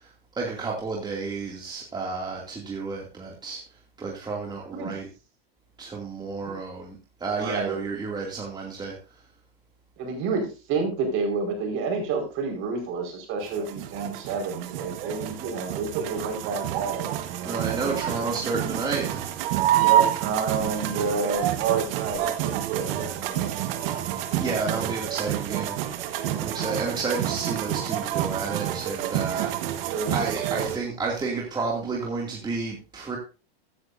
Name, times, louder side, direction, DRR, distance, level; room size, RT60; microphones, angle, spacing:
voice 1, 0.4-3.6 4.0-5.1 5.8-9.0 17.4-19.4 24.4-33.2, right 4 dB, 15° right, -2 dB, 2.5 m, -31 dB
voice 2, 7.3-7.8 10.0-18.0 19.8-24.0 29.9-30.2, right 4 dB, 45° right, 4 dB, 5.0 m, -30 dB
sound 1, 13.4-30.8, right 12 dB, 65° right, 1.6 m, -28 dB
15.5 x 9.7 x 2.7 m, 0.32 s
supercardioid pair, 135°, 31 cm